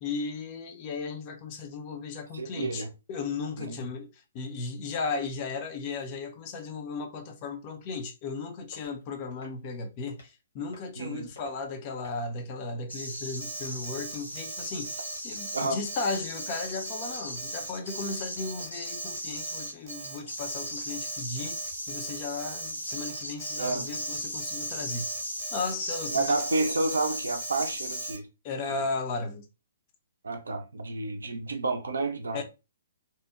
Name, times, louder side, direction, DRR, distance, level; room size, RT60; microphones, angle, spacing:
voice 1, 0.0-25.1 25.5-26.7 28.4-29.5 32.3-32.4, left 4 dB, 30° left, 0.4 m, -35 dB
voice 2, 2.3-2.9 3.6-3.8 11.0-11.3 15.5-15.8 23.6-23.9 26.1-28.3 28.7-28.8 30.2-32.4, right 3 dB, 65° right, 0.4 m, -30 dB
sound 1, 8.7-9.0 9.4-9.7 10.1-10.3 10.7-11.1 11.4-11.6 12.0-12.3 16.0-16.2 16.6-16.9 17.3-17.4 17.9-18.2 18.6-18.7 20.8-21.0 21.4-21.7 22.1-22.2, left 2 dB, 60° left, 0.9 m, -53 dB
sound 2, 12.9-28.1, equal, 85° left, 0.9 m, -37 dB
Alarm, 13.4-28.2, right 4 dB, 30° right, 0.7 m, -42 dB
2.7 x 2.0 x 2.2 m
figure-of-eight pair, 125°, 0 cm